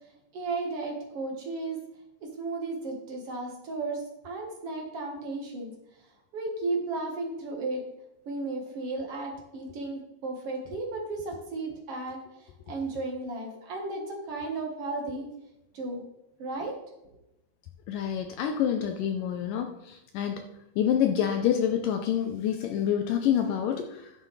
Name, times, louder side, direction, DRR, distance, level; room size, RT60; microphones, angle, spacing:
voice 1, 0.3-1.8 2.2-5.7 6.3-7.8 8.2-15.3 15.7-16.0 16.4-16.7, right 3 dB, 55° right, 1 dB, 1.7 m, -34 dB
voice 2, 17.9-20.5 20.8-24.1, left 9 dB, 80° left, 5 dB, 1.9 m, -27 dB
11.0 x 7.7 x 3.2 m, 0.89 s
omnidirectional pair, 4.5 m